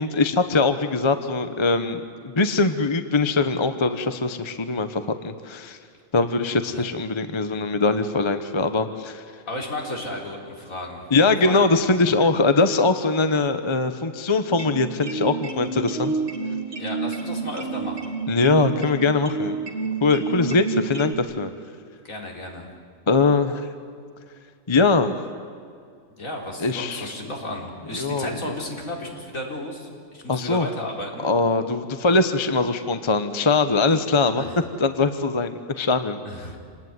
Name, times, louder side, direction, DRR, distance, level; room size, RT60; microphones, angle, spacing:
voice 1, 0.0-5.8 6.1-9.2 11.1-16.1 18.3-19.6 20.0-21.5 23.1-23.7 24.7-25.1 26.6-27.1 27.9-28.4 30.3-30.7 31.2-34.4 34.8-36.2, left 3 dB, 25° left, 9 dB, 0.9 m, -22 dB
voice 2, 9.5-11.1 11.4-11.7 16.8-18.1 22.0-22.7 26.1-31.3 34.4-34.6 36.2-36.6, left 1 dB, 85° left, 0 dB, 4.3 m, -33 dB
sound 1, 14.5-21.1, right 4 dB, 60° right, 2.8 m, -30 dB
27.5 x 19.5 x 9.6 m, 2.3 s
omnidirectional pair, 1.4 m